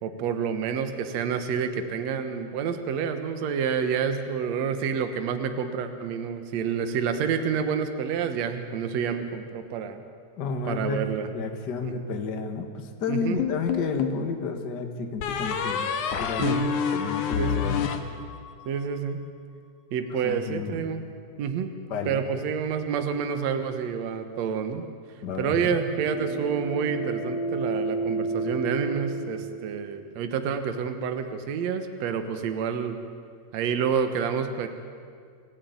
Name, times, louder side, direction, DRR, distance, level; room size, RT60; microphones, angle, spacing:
voice 1, 0.0-10.0 10.7-11.3 11.8-11.9 13.1-13.4 16.4-16.7 17.4-17.6 18.7-19.2 19.9-21.1 21.4-21.7 22.1-24.9 25.4-33.0 33.5-34.7, right 7 dB, 65° right, 7 dB, 2.4 m, -28 dB
voice 2, 10.4-15.9 16.2-16.6 16.9-17.9 20.2-21.0 21.9-22.2 25.2-25.8, left 4 dB, 40° left, 5 dB, 2.0 m, -31 dB
sound 1, 13.4-14.3 15.2-18.7, left 7 dB, 90° left, 2.9 m, -28 dB
sound 2, 25.5-30.0, right 2 dB, 55° left, 4.1 m, -31 dB
26.5 x 15.0 x 9.5 m, 2.2 s
omnidirectional pair, 3.4 m